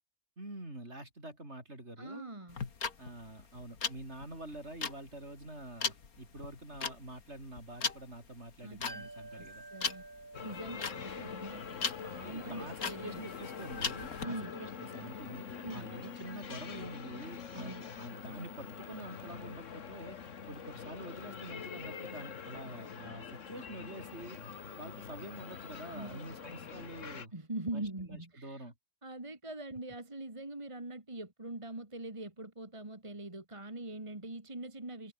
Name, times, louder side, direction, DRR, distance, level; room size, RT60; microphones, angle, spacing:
voice 1, 0.4-2.3 3.0-9.7 11.0-11.3 12.3-20.2 20.5-24.4 24.8-27.3 27.7-28.7, right 1 dB, 50° right, 7.5 m, -47 dB
voice 2, 2.0-2.6 8.6-10.1 10.4-11.6 12.0-13.2 14.2-14.6 15.6-15.9 17.5-17.9 25.9-26.2 26.5-26.7 27.3-28.7 29.0-35.1, right 2 dB, 20° right, 2.4 m, -43 dB
sound 1, 2.5-14.3, left 5 dB, 90° left, 2.4 m, -39 dB
sound 2, 8.9-20.5 20.7-20.8, right 2 dB, 80° right, 5.1 m, -55 dB
sound 3, 10.3-27.3, left 6 dB, 60° left, 1.7 m, -45 dB
omnidirectional pair, 1.5 m